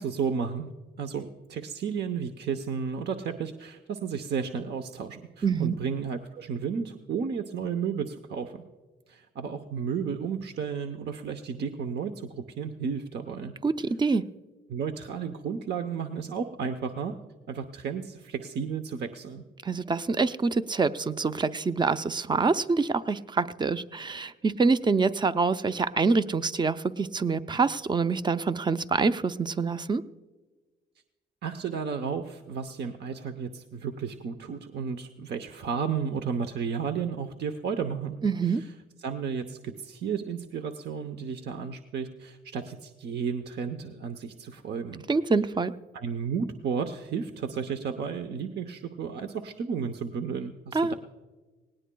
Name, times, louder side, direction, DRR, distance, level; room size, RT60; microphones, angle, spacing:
voice 1, 0.0-8.6 9.1-13.5 14.7-17.1 17.5-19.4 31.4-38.2 38.5-38.7 39.0-45.0 45.9-50.9, right 6 dB, 60° right, 7 dB, 0.8 m, -33 dB
voice 2, 5.4-5.8 13.6-14.3 19.6-30.0 38.2-38.6 45.1-45.7 50.7-50.9, right 4 dB, 20° right, 12 dB, 0.5 m, -26 dB
18.5 x 18.0 x 2.3 m, 1.3 s
cardioid pair, 90°, 20 cm